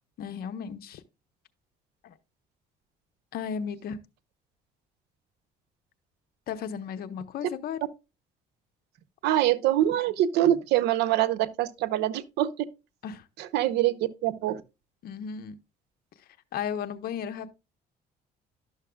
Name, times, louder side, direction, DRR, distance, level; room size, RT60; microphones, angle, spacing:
voice 1, 0.2-1.0 2.0-2.1 3.3-4.0 6.5-7.8 13.0-13.2 15.0-15.6 16.5-17.5, left 7 dB, 65° left, 0.9 m, -34 dB
voice 2, 9.2-12.5 13.4-14.0 14.2-14.6, right 13 dB, 85° right, 0.7 m, -24 dB
12.0 x 6.4 x 2.3 m
cardioid pair, 110°, 17 cm